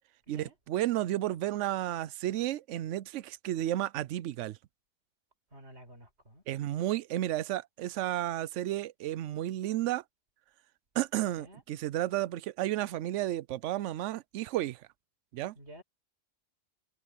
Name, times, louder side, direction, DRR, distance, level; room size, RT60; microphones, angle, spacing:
voice 1, 0.3-4.6 6.5-10.0 11.0-14.8 15.3-15.5, right 14 dB, 80° right, 0.9 m, -32 dB
voice 2, 5.5-6.4 11.4-11.6 15.5-15.8, right 1 dB, 65° right, 5.1 m, -51 dB
omnidirectional pair, 1.2 m